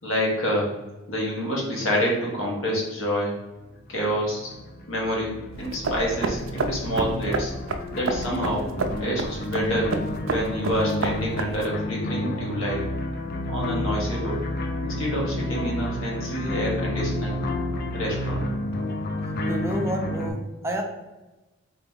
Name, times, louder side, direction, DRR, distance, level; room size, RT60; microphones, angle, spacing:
voice 1, 0.0-0.7 1.1-3.4 3.9-4.5 4.9-7.5 7.9-8.7 9.0-9.9 10.3-12.8 13.5-14.4 14.8-17.4 17.9-18.4, equal, 90° left, -3 dB, 1.4 m, -27 dB
sound 1, 3.9-20.3, left 1 dB, 50° left, 0.5 m, -30 dB
sound 2, 5.5-11.7, right 3 dB, 70° right, 0.4 m, -30 dB
voice 2, 19.5-20.8, equal, 15° right, 2 dB, 0.5 m, -29 dB
3.8 x 2.9 x 3.6 m, 1.1 s
head